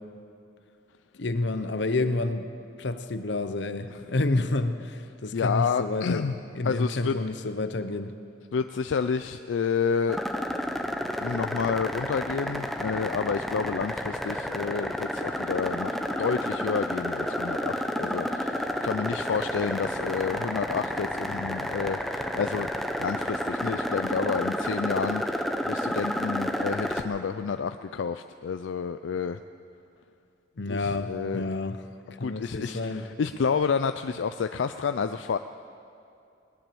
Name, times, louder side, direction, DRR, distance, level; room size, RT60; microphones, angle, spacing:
voice 1, 1.1-2.5 2.8-6.3 6.5-8.1 30.6-31.8 32.2-33.1, left 2 dB, 70° left, 10 dB, 0.8 m, -29 dB
voice 2, 5.3-6.3 6.6-7.1 8.5-10.2 11.2-22.7 23.0-29.4 30.7-31.4 32.2-35.4, left 6 dB, 85° left, 9 dB, 0.4 m, -29 dB
sound 1, 10.1-27.0, equal, ahead, 0.7 m, -31 dB
19.5 x 10.5 x 7.0 m, 2.6 s
head